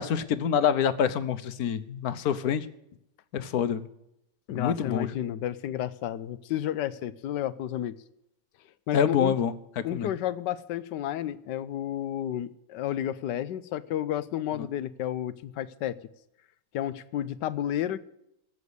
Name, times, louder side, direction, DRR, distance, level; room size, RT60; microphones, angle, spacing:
voice 1, 0.0-2.7 3.3-3.9 4.5-5.2 8.9-10.1, left 8 dB, 65° left, 13 dB, 1.3 m, -26 dB
voice 2, 4.5-7.9 8.9-9.4 9.8-16.0 16.7-18.0, left 11 dB, 80° left, 15 dB, 1.3 m, -31 dB
14.5 x 8.3 x 8.2 m, 0.81 s
omnidirectional pair, 1.9 m